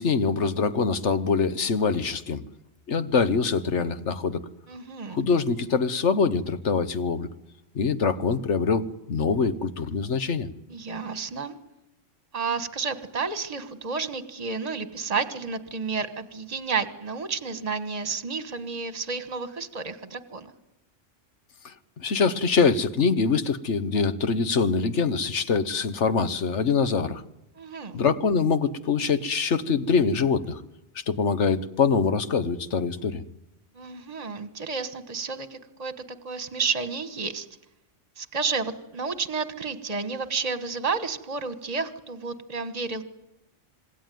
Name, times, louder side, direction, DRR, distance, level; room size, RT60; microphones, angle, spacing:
voice 1, 0.0-2.4 2.9-4.4 5.1-7.3 7.7-10.5 21.6-27.2 27.9-30.6 30.9-33.2, left 5 dB, 70° left, 12 dB, 1.5 m, -24 dB
voice 2, 4.7-5.2 10.7-11.5 12.3-20.5 27.6-28.0 33.7-35.9 36.2-37.5 38.2-43.0, right 4 dB, 35° right, 10 dB, 1.5 m, -31 dB
26.5 x 21.0 x 9.3 m, 0.90 s
omnidirectional pair, 1.3 m